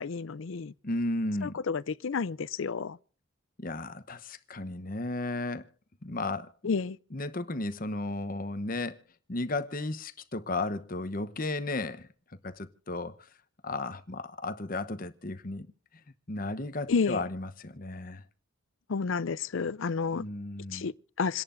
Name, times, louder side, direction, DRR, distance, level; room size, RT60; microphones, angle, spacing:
voice 1, 0.0-0.7 1.4-3.0 6.6-7.0 16.9-17.2 18.9-20.2 20.7-21.4, left 5 dB, 70° left, 0.5 m, -30 dB
voice 2, 0.8-1.6 3.6-5.7 6.0-6.5 7.1-9.0 9.3-12.1 12.4-13.1 13.6-15.7 16.3-18.2 20.1-20.9, left 2 dB, 40° left, 1.0 m, -34 dB
28.0 x 11.0 x 2.6 m
head